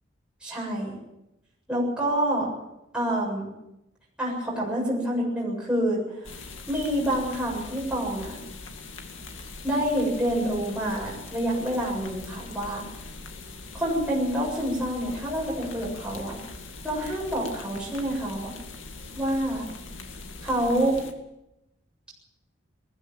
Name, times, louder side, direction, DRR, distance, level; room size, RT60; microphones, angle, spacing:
voice 1, 0.4-1.0 1.7-2.5 2.9-3.5 4.2-6.0 6.7-8.4 9.6-12.8 13.7-16.4 16.8-18.5 19.1-19.6 20.4-21.0, right 1 dB, 5° right, -5 dB, 7.5 m, -27 dB
sound 1, 6.2-21.1, left 3 dB, 85° left, 2.4 m, -42 dB
20.0 x 15.0 x 8.9 m, 0.90 s
head